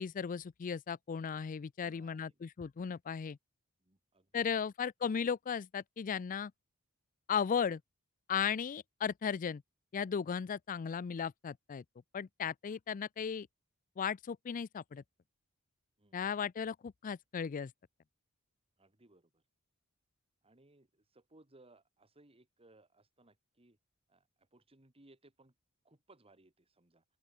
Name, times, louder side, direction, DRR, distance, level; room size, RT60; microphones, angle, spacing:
voice 1, 0.0-3.4 4.3-6.5 7.3-7.8 8.3-9.6 9.9-11.8 12.1-13.5 14.0-15.0 16.1-17.7, left 7 dB, 35° left, 0.4 m, -36 dB
voice 2, 1.8-2.4 3.8-4.7 16.0-16.2 18.8-19.4 20.4-23.8 24.1-25.5 25.8-27.0, right 2 dB, 25° right, 2.3 m, -64 dB
open air
head